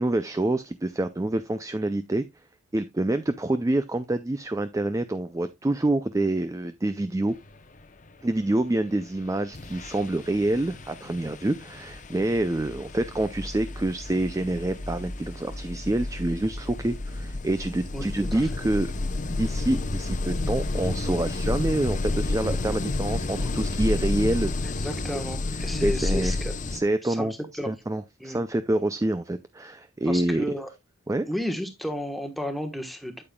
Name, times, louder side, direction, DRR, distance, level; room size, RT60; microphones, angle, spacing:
voice 1, 0.0-2.2 2.7-7.4 8.2-18.9 19.3-24.9 25.6-26.4 26.7-27.3 27.7-30.5 31.1-31.3, right 1 dB, 15° right, 0.3 m, -27 dB
sound 1, 9.0-9.2 9.5-26.8, left 2 dB, 35° left, 0.7 m, -31 dB
voice 2, 17.9-18.5 24.8-26.5 27.0-27.3 27.6-27.7 28.2-28.4 30.0-30.7 31.2-33.2, equal, ahead, 1.2 m, -32 dB
8.7 x 8.7 x 2.2 m
head